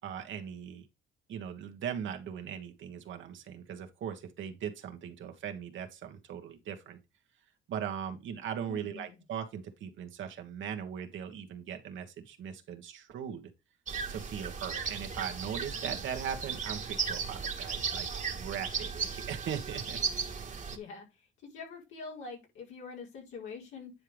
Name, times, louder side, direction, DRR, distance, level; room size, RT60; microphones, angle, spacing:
voice 1, 0.0-0.9 1.3-7.0 7.7-13.5 14.1-20.0, right 8 dB, 75° right, 1.6 m, -39 dB
voice 2, 8.7-9.2 20.7-23.9, left 5 dB, 85° left, 4.4 m, -45 dB
sound 1, 13.9-20.8, right 6 dB, 40° right, 1.6 m, -36 dB
9.7 x 4.7 x 3.5 m
cardioid pair, 90°, 20 cm